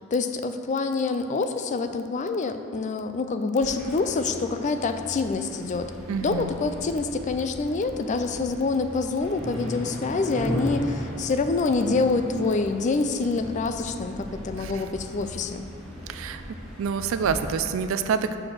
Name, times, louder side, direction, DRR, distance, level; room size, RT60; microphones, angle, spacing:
voice 1, 0.1-5.9 6.2-15.7, left 3 dB, 35° left, 8 dB, 0.3 m, -26 dB
sound 1, 3.6-17.4, equal, ahead, 1.8 m, -37 dB
voice 2, 6.1-6.5 14.6-14.8 16.1-16.4 16.8-18.4, right 6 dB, 75° right, 9 dB, 0.4 m, -27 dB
6.6 x 4.3 x 6.2 m, 2.6 s
head